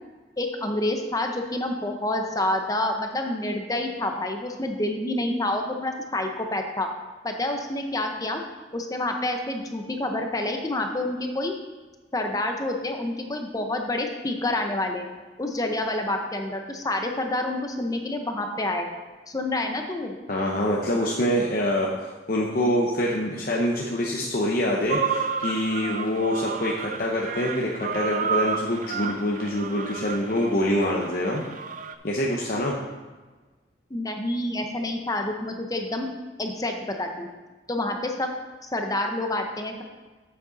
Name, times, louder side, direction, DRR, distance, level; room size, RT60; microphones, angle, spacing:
voice 1, 0.4-6.9 7.2-8.4 8.7-11.5 12.1-15.1 15.4-18.9 19.3-20.1 33.9-36.1 36.4-37.3 37.7-38.3 38.6-39.8, left 1 dB, 20° left, 4 dB, 0.7 m, -28 dB
voice 2, 20.3-31.4 32.0-32.8, left 1 dB, 50° left, -2 dB, 0.9 m, -25 dB
sound 1, 24.9-31.9, right 6 dB, 45° right, 0.5 m, -31 dB
8.3 x 7.5 x 4.0 m, 1.3 s
head